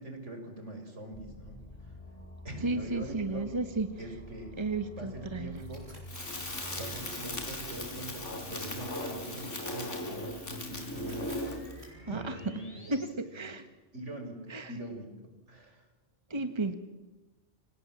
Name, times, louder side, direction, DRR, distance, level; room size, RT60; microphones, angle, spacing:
voice 1, 0.0-2.0 2.4-3.5 4.0-4.5 5.0-5.9 6.8-11.4 11.7-13.6 13.9-15.9, right 1 dB, 80° right, 5 dB, 5.4 m, -43 dB
sound 1, 1.1-13.1, equal, 30° left, 5.0 m, -48 dB
voice 2, 2.6-3.9 4.6-5.6 12.1-12.4 12.9-13.7 14.5-14.7 16.3-16.7, right 2 dB, 25° right, 9 dB, 1.6 m, -33 dB
sound 2, 5.5-11.8, right 1 dB, 65° right, 7.5 m, -56 dB
Crackle, 6.1-11.8, left 1 dB, 90° left, 4.7 m, -38 dB
30.0 x 26.5 x 7.4 m, 1.1 s
omnidirectional pair, 1.2 m